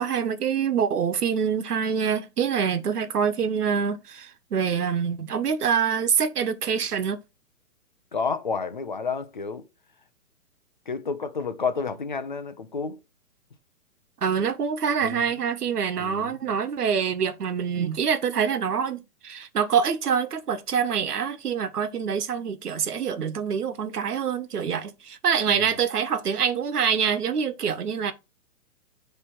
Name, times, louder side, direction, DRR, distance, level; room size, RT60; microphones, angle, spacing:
voice 1, 0.0-7.2 14.2-28.1, right 7 dB, 85° right, 1.4 m, -25 dB
voice 2, 8.1-9.6 10.9-13.0 15.0-15.2 16.0-16.3 25.5-25.7, left 5 dB, 35° left, 0.6 m, -30 dB
7.1 x 3.3 x 6.1 m
hypercardioid pair, 175°, 45 cm